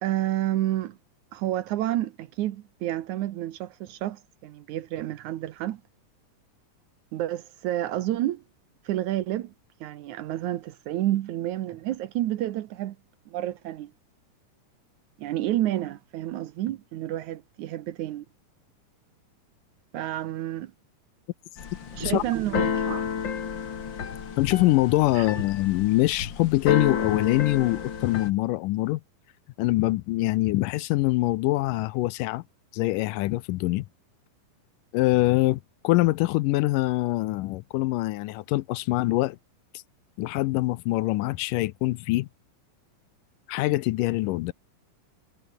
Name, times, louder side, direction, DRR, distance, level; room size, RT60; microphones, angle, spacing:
voice 1, 0.0-1.0 1.3-5.8 7.1-8.4 8.9-9.5 9.8-13.0 13.3-13.9 15.2-18.3 19.9-20.7 21.9-23.0 25.2-25.3, right 14 dB, 70° right, 2.1 m, -29 dB
Keyboard (musical), 21.6-28.3, left 7 dB, 40° left, 2.1 m, -31 dB
voice 2, 24.4-29.0 29.6-32.4 32.7-33.9 34.9-39.4 40.2-42.3 43.5-44.5, left 18 dB, 80° left, 2.2 m, -24 dB
omnidirectional pair, 4.0 m